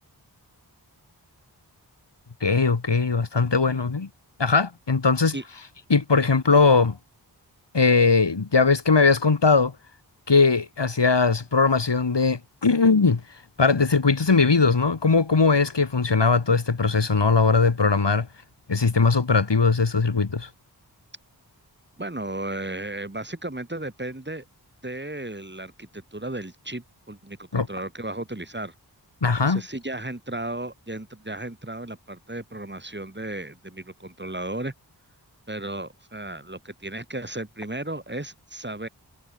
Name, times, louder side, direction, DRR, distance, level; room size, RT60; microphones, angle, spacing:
voice 1, 2.4-4.1 4.4-5.3 5.9-7.0 7.7-9.7 10.3-13.2 13.6-18.3 18.7-20.5 27.5-27.7 29.2-29.6, left 4 dB, 80° left, 4.9 m, -20 dB
voice 2, 22.0-24.5 24.8-28.7 29.4-34.7 35.5-38.9, right 1 dB, 25° right, 7.2 m, -34 dB
wide cardioid pair, 45°, 41 cm